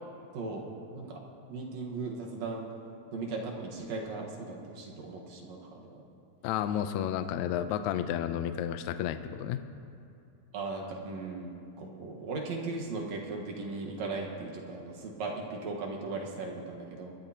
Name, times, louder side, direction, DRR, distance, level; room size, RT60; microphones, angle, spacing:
voice 1, 0.3-0.7 0.9-1.2 1.5-2.6 3.1-6.0 10.5-17.1, right 3 dB, 60° right, -1 dB, 2.4 m, -37 dB
voice 2, 6.4-9.6, left 10 dB, 85° left, 9 dB, 1.6 m, -31 dB
23.5 x 12.0 x 2.9 m, 2.8 s
omnidirectional pair, 3.9 m